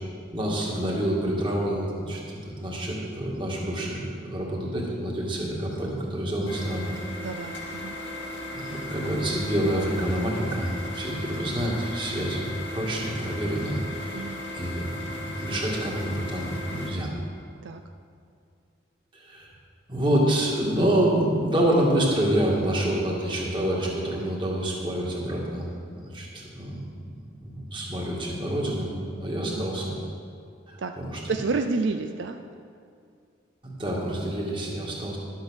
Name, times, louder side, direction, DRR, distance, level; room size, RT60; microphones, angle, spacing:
voice 1, 0.3-6.9 8.5-14.3 14.5-17.1 19.1-19.5 19.9-25.7 26.0-28.9 29.1-29.9 30.7-31.3 33.6-35.2, right 1 dB, 25° right, -3 dB, 2.0 m, -27 dB
sound 1, 6.5-16.9, left 1 dB, 80° left, 2.4 m, -36 dB
voice 2, 7.2-8.0 14.1-14.4 17.6-17.8 29.5-29.9 30.8-30.9 31.3-32.4, right 3 dB, 75° right, 6 dB, 0.5 m, -30 dB
12.0 x 8.1 x 6.4 m, 2.4 s
head